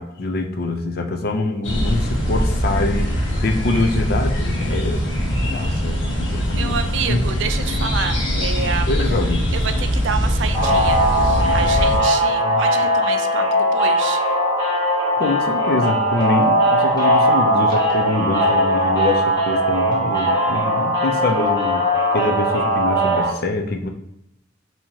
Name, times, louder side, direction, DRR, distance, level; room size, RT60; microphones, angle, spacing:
voice 1, 0.0-3.1 3.4-5.2 5.5-6.8 7.1-7.2 8.9-9.4 12.4-12.6 15.2-21.9 22.1-23.9, left 2 dB, 50° left, 5 dB, 0.5 m, -24 dB
sound 1, 1.6-12.0, equal, 85° left, 1.2 m, -22 dB
voice 2, 6.5-8.9 9.5-14.2, right 6 dB, 75° right, 8 dB, 0.4 m, -28 dB
sound 2, 10.5-23.3, equal, 20° left, 1.2 m, -19 dB
4.6 x 2.8 x 2.8 m, 0.81 s
head